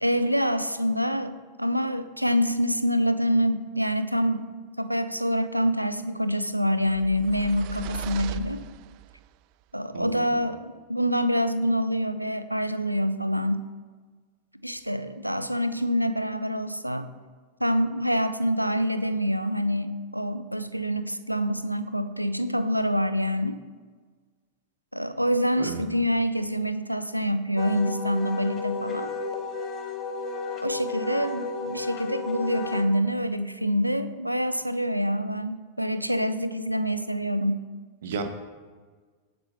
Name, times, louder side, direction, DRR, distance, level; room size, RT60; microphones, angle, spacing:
voice 1, 0.0-1.3 1.6-4.5 4.8-8.6 9.7-13.6 14.6-17.1 17.6-23.6 24.9-29.1 30.6-37.6, equal, 90° right, 11 dB, 0.7 m, -26 dB
sound 1, 6.9-9.3, right 14 dB, 45° right, 0.3 m, -38 dB
voice 2, 9.9-10.4 25.6-25.9 38.0-38.2, right 5 dB, 60° right, 7 dB, 1.4 m, -33 dB
Wind instrument woodwind instrument, 27.6-32.8, left 4 dB, 30° left, 1.8 m, -33 dB
17.5 x 9.8 x 3.1 m, 1.5 s
figure-of-eight pair, 90°, 0 cm